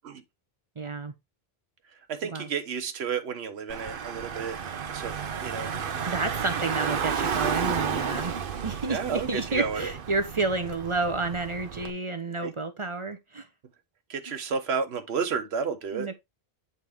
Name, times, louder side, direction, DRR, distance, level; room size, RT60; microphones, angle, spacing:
voice 1, 0.8-1.1 2.3-2.5 6.1-8.4 8.6-13.5 15.9-16.1, right 3 dB, 35° right, 0.7 m, -30 dB
voice 2, 2.1-4.6 4.9-5.2 5.4-5.7 8.9-9.8 12.4-12.5 14.1-16.1, right 6 dB, 90° right, 1.1 m, -31 dB
Car / Engine, 3.7-11.9, right 7 dB, 65° right, 0.9 m, -32 dB
8.7 x 4.1 x 3.4 m
omnidirectional pair, 1.0 m